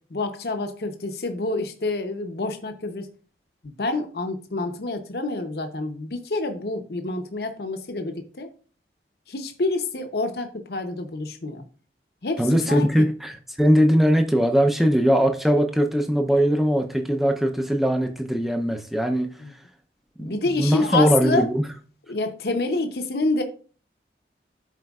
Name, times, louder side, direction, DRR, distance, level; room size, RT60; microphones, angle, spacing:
voice 1, 0.1-3.1 3.6-8.5 9.3-11.6 12.2-13.1 19.4-19.5 20.2-21.5 22.1-23.4, left 2 dB, 65° left, 0.8 m, -27 dB
voice 2, 12.4-19.3 20.3-21.6, equal, ahead, 0.6 m, -20 dB
12.0 x 4.4 x 2.4 m
head